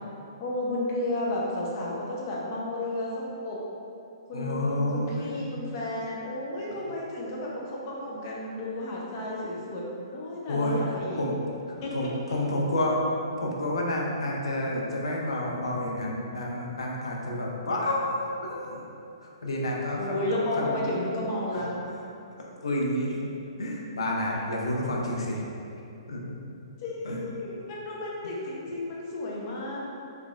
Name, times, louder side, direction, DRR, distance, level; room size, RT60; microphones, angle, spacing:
voice 1, 0.4-3.6 4.3-11.2 11.8-11.9 20.0-21.7 26.8-29.8, left 1 dB, 40° left, -4 dB, 0.7 m, -32 dB
voice 2, 4.3-5.3 10.5-10.8 11.2-11.3 11.9-13.0 13.4-18.8 19.2-20.2 20.5-20.7 22.6-23.2 23.6-25.4 26.1-26.3 27.0-27.2, left 1 dB, 90° left, -2 dB, 0.6 m, -29 dB
3.4 x 3.2 x 2.5 m, 2.7 s
hypercardioid pair, 145°, 3 cm